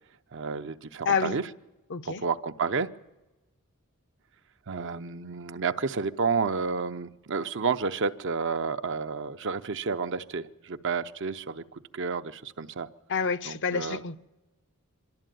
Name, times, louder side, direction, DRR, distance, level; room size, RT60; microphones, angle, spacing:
voice 1, 0.3-1.5 2.0-2.9 4.7-12.9 13.4-14.0, right 5 dB, 55° right, 0.7 m, -30 dB
voice 2, 1.0-1.4 1.9-2.2 13.1-14.2, left 6 dB, 55° left, 0.7 m, -28 dB
24.5 x 12.5 x 9.2 m
head